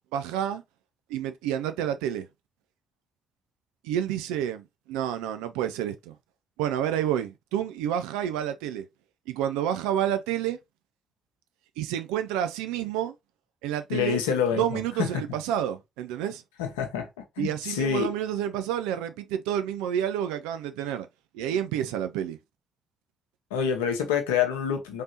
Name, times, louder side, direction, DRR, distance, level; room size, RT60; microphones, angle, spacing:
voice 1, 0.1-0.6 1.1-2.3 3.8-6.2 6.6-8.9 9.3-10.6 11.8-13.1 13.6-14.2 14.6-16.4 17.4-21.1 21.3-22.4, right 10 dB, 75° right, 0.3 m, -29 dB
voice 2, 13.9-15.2 16.6-17.1 17.4-18.1 23.5-25.0, left 7 dB, 80° left, 0.7 m, -27 dB
3.3 x 2.7 x 2.8 m
hypercardioid pair, 40°, 0 cm